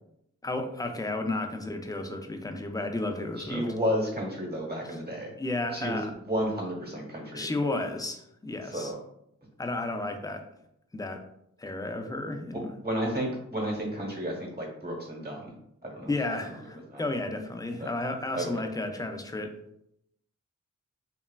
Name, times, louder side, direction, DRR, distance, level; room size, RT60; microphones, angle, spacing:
voice 1, 0.4-3.7 5.4-6.1 7.3-8.9 9.6-10.4 10.9-11.2 11.6-12.7 16.1-19.5, left 2 dB, 15° left, 5 dB, 0.3 m, -32 dB
voice 2, 3.4-5.3 5.7-7.5 8.7-9.0 12.5-15.5 15.8-16.1 16.9-17.0 17.8-17.9 18.3-18.6, equal, 35° right, -2 dB, 1.0 m, -32 dB
2.9 x 2.3 x 2.2 m, 0.76 s
cardioid pair, 60°, 30 cm